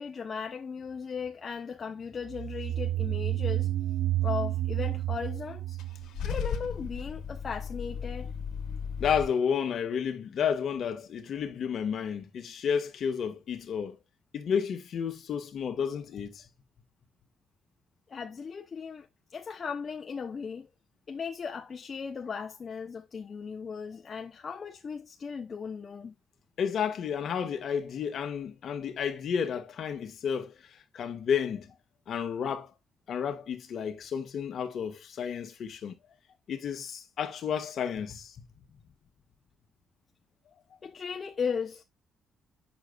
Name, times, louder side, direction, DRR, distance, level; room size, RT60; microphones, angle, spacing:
voice 1, 0.0-3.7 4.2-5.8 6.2-8.3 18.1-19.1 19.3-20.7 21.1-26.1 40.8-41.8, left 6 dB, 40° left, 0.8 m, -37 dB
sound 1, 2.3-6.8, right 14 dB, 75° right, 0.3 m, -30 dB
Car / Engine starting / Idling, 5.8-9.3, left 6 dB, 85° left, 1.6 m, -35 dB
voice 2, 9.0-14.0 14.3-16.4 26.6-30.5 30.9-31.7 32.1-32.7 33.1-35.9 36.5-38.5, left 7 dB, 60° left, 1.6 m, -31 dB
8.7 x 6.5 x 2.4 m
cardioid pair, 90°, 0 cm